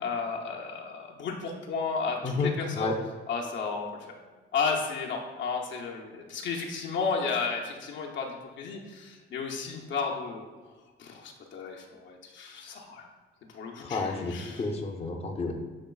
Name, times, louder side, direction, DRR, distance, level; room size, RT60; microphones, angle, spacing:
voice 1, 0.0-2.9 3.3-4.1 4.5-10.5 11.0-13.1 13.5-14.7, left 5 dB, 70° left, 0 dB, 0.7 m, -33 dB
voice 2, 2.2-3.0 13.8-15.5, left 3 dB, 30° left, 1 dB, 0.6 m, -30 dB
7.1 x 2.9 x 2.3 m, 1.4 s
cardioid pair, 90°, 20 cm